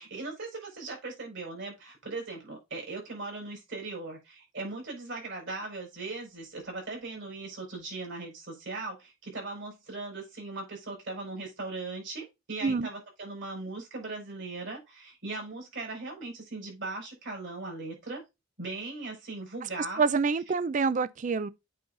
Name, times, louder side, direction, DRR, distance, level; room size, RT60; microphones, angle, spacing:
voice 1, 0.0-18.2 18.6-20.0, right 3 dB, 60° right, 5.1 m, -39 dB
voice 2, 19.8-21.5, right 5 dB, 35° right, 0.4 m, -27 dB
8.6 x 4.0 x 3.8 m
head